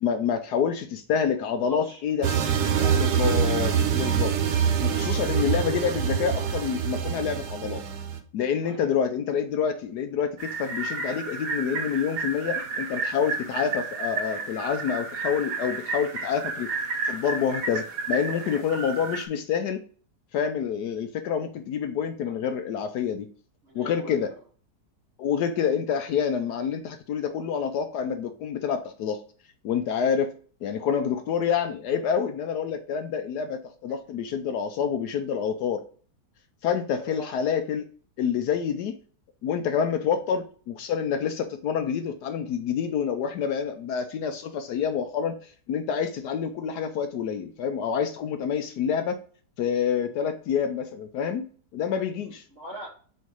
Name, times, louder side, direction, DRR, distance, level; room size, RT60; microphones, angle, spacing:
voice 1, 0.0-2.3 2.9-4.3 4.8-7.8 8.3-16.7 17.0-19.8 20.3-23.3 23.7-24.3 25.2-29.2 29.6-30.3 30.6-35.8 36.6-37.8 38.2-38.9 39.4-49.2 49.6-51.5 51.7-52.4, left 7 dB, 70° left, 7 dB, 1.1 m, -27 dB
voice 2, 1.6-2.0 2.6-3.0 8.6-8.9 22.2-22.3 23.6-24.3 36.9-37.4 52.2-52.9, right 1 dB, 35° right, -4 dB, 2.5 m, -42 dB
sound 1, 2.2-8.2, right 8 dB, 90° right, 1.4 m, -25 dB
sound 2, 10.4-19.2, right 4 dB, 70° right, 1.6 m, -32 dB
4.6 x 4.5 x 4.7 m, 0.42 s
omnidirectional pair, 1.9 m